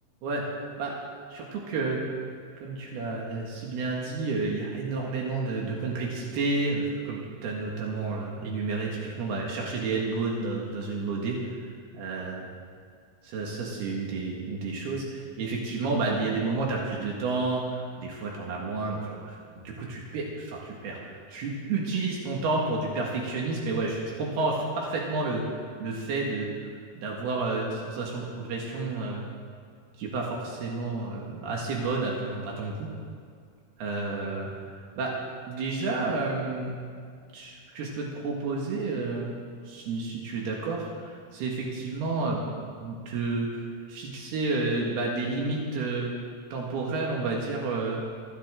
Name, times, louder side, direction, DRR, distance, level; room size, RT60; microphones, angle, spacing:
voice 1, 1.3-2.1 2.6-12.5 13.2-26.7 27.0-29.2 30.0-32.9 33.8-34.7 35.0-35.2 35.5-36.8 37.3-39.3 39.7-46.1 46.5-48.0, right 3 dB, 85° right, -2 dB, 3.7 m, -30 dB
22.5 x 15.5 x 3.7 m, 2.2 s
omnidirectional pair, 4.5 m